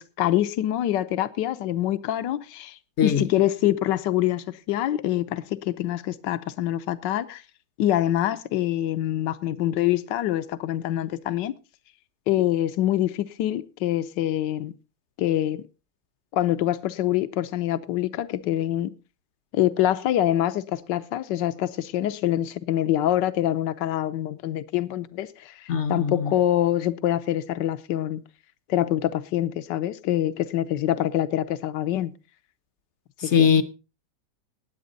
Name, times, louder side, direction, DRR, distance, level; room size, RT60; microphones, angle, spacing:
voice 1, 0.0-7.4 7.8-11.5 12.3-14.7 15.2-15.6 16.3-19.0 19.5-28.2 28.7-32.1 33.2-33.6, left 12 dB, 75° left, 1.4 m, -25 dB
voice 2, 25.7-26.3 33.2-33.6, left 7 dB, 50° left, 0.9 m, -21 dB
19.5 x 8.3 x 3.9 m
omnidirectional pair, 2.0 m